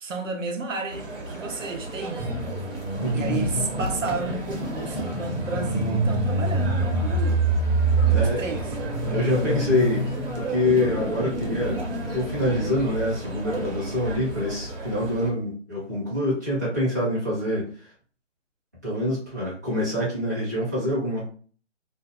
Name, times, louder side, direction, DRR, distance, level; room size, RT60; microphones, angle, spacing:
voice 1, 0.0-2.2 3.1-7.4 8.2-8.6, right 4 dB, 90° right, 0.7 m, -32 dB
sound 1, 0.9-15.3, right 1 dB, 50° right, 1.0 m, -34 dB
sound 2, 2.2-12.7, right 2 dB, 30° left, 0.6 m, -26 dB
voice 2, 3.0-3.4 8.1-8.5 9.1-11.8 12.1-17.7 18.8-21.3, left 1 dB, 15° right, 0.6 m, -26 dB
2.6 x 2.3 x 2.3 m
figure-of-eight pair, 165°, 37 cm